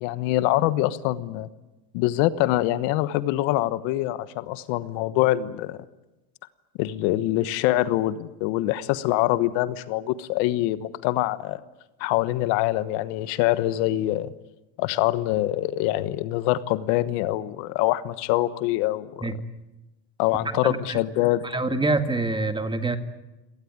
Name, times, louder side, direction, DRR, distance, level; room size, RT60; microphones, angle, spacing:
voice 1, 0.0-1.5 1.9-5.8 6.8-11.6 12.0-14.3 14.8-19.3 20.2-21.4, left 15 dB, 65° left, 14 dB, 1.3 m, -24 dB
voice 2, 20.6-21.0 21.4-23.0, right 2 dB, 10° right, 8 dB, 1.9 m, -25 dB
28.5 x 18.5 x 9.6 m, 1.0 s
supercardioid pair, 130°, 50 cm